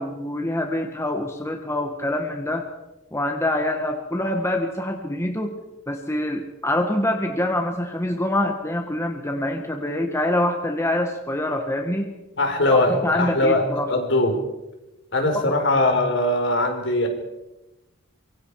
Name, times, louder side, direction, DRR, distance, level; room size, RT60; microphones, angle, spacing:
voice 1, 0.0-2.7 3.1-5.5 5.9-12.1 12.7-13.9 15.5-15.6, left 1 dB, 15° left, 4 dB, 1.5 m, -25 dB
voice 2, 12.4-13.6 13.9-14.3 15.1-17.1, left 2 dB, 60° left, 4 dB, 4.4 m, -21 dB
25.5 x 23.0 x 4.8 m, 1.0 s
head